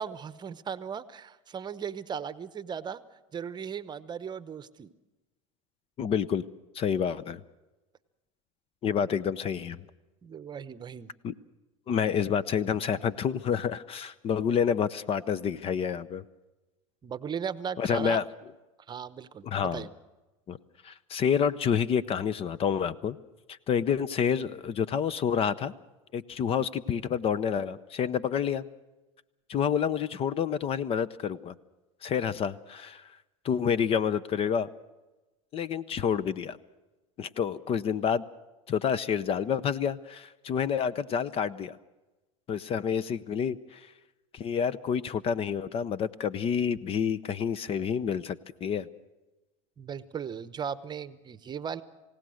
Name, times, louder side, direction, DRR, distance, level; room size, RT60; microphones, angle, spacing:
voice 1, 0.0-3.0 3.3-4.9 10.2-11.1 17.0-18.2 18.9-19.9 49.8-51.8, right 7 dB, 25° right, 14 dB, 0.9 m, -37 dB
voice 2, 6.0-6.4 6.7-7.4 8.8-9.8 11.2-11.3 11.9-16.2 17.8-18.2 19.4-19.9 20.5-20.6 20.8-23.2 23.5-25.7 26.1-28.6 29.5-31.5 32.0-33.1 33.4-34.7 35.5-36.6 37.2-38.2 38.7-41.8 42.5-43.9 44.3-48.9, left 7 dB, 35° left, 18 dB, 0.7 m, -28 dB
27.5 x 17.0 x 6.4 m, 1.1 s
hypercardioid pair, 105°, 17 cm